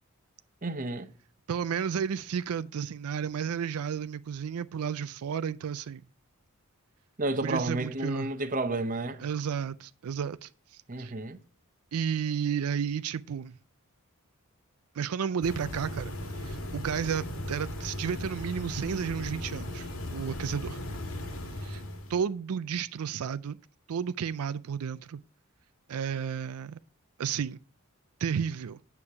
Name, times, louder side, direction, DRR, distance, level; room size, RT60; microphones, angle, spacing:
voice 1, 0.6-1.1 7.2-9.2 10.9-11.4, right 2 dB, 35° right, 0.7 m, -31 dB
voice 2, 1.5-6.0 7.4-8.3 9.2-11.1 11.9-13.5 15.0-19.9 20.1-20.8 21.6-21.8 22.1-23.6 23.9-25.2 25.9-26.8 27.2-27.6 28.2-28.8, right 7 dB, 85° right, 0.4 m, -32 dB
sound 1, 15.4-22.2, left 1 dB, 75° left, 1.8 m, -37 dB
8.7 x 7.0 x 4.7 m
head